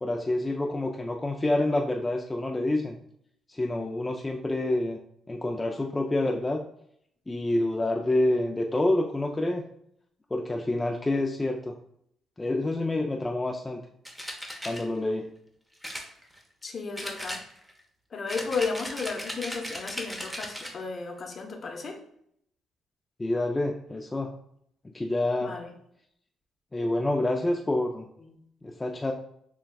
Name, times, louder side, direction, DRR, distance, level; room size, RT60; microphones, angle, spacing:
voice 1, 0.0-3.0 3.5-5.0 5.3-6.7 7.3-9.6 10.3-11.7 12.4-13.8 14.6-15.3 23.2-24.3 24.9-25.5 26.7-28.1 28.6-29.1, left 1 dB, 15° left, 1 dB, 0.4 m, -27 dB
sound 1, 14.1-14.8 15.8-16.6 17.0-17.8 18.3-20.8, equal, 5° right, 0.8 m, -37 dB
voice 2, 16.6-17.4 18.1-22.0 25.4-25.7 28.2-28.3, left 4 dB, 45° left, 3 dB, 0.8 m, -33 dB
6.5 x 2.3 x 2.3 m, 0.71 s
cardioid pair, 90°, 0 cm